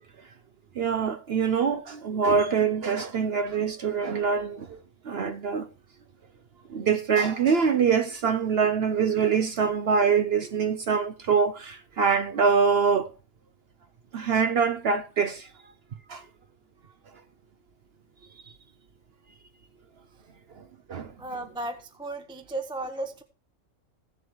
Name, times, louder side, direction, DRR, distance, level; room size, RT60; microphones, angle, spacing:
voice 1, 0.8-5.7 6.7-13.1 14.1-15.5 16.1-16.2 20.9-21.1, right 6 dB, 60° right, 0.8 m, -24 dB
voice 2, 21.2-23.2, right 2 dB, 5° right, 0.7 m, -35 dB
16.0 x 7.6 x 3.1 m
omnidirectional pair, 1.4 m